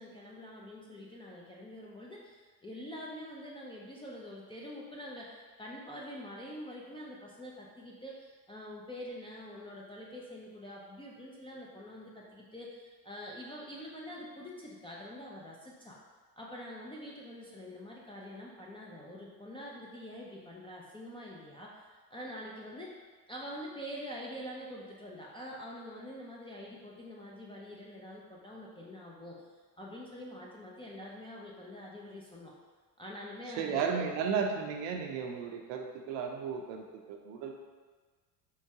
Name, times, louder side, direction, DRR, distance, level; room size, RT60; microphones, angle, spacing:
voice 1, 0.0-16.0 16.4-22.9 23.3-29.4 29.8-32.5 33.0-34.1, equal, 15° left, -4 dB, 0.3 m, -45 dB
voice 2, 33.6-37.5, right 6 dB, 65° right, 3 dB, 0.6 m, -34 dB
4.5 x 2.2 x 2.7 m, 1.5 s
supercardioid pair, 80°, 47 cm